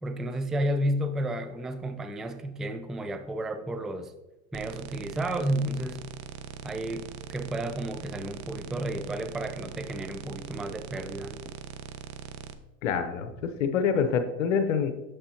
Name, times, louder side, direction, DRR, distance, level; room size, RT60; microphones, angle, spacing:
voice 1, 0.0-4.1 4.5-6.0 6.6-11.4, right 1 dB, ahead, 8 dB, 0.3 m, -32 dB
sound 1, 4.5-12.5, right 8 dB, 70° right, 0.8 m, -42 dB
voice 2, 12.8-15.1, left 6 dB, 80° left, 9 dB, 0.8 m, -26 dB
8.9 x 7.2 x 2.8 m, 1.0 s
hypercardioid pair, 100°, 37 cm